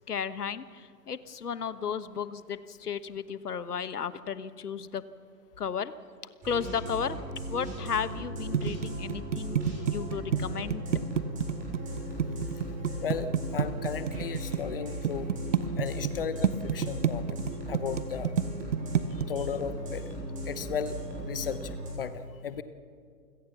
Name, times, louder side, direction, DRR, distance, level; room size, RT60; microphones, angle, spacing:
voice 1, 0.1-5.0 5.6-5.9 6.4-7.2 7.5-10.8, left 7 dB, 65° left, 15 dB, 1.2 m, -34 dB
sound 1, 6.4-21.9, right 1 dB, 15° right, 6.8 m, -37 dB
sound 2, 8.5-14.6 15.0-16.1 16.4-19.2, right 9 dB, 45° right, 1.0 m, -27 dB
voice 2, 13.0-15.3 15.8-17.4 17.7-18.3 19.3-20.1 20.5-22.6, left 7 dB, 35° left, 13 dB, 0.9 m, -35 dB
28.5 x 16.5 x 7.1 m, 2.2 s
figure-of-eight pair, 135°, 49 cm